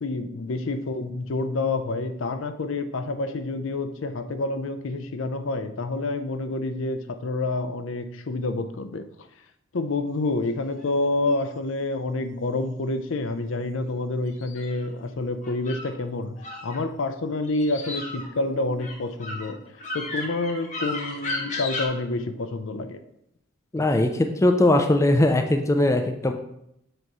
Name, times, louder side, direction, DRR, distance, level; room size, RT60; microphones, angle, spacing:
voice 1, 0.0-9.0 9.7-19.6 19.9-23.0, left 2 dB, 65° left, 8 dB, 0.5 m, -28 dB
sound 1, 10.6-11.6 14.3-15.9 16.4-17.1 17.4-21.9, left 2 dB, 35° left, 1.1 m, -35 dB
voice 2, 23.7-26.3, left 1 dB, 15° left, 5 dB, 0.4 m, -20 dB
7.8 x 3.0 x 4.7 m, 0.80 s
head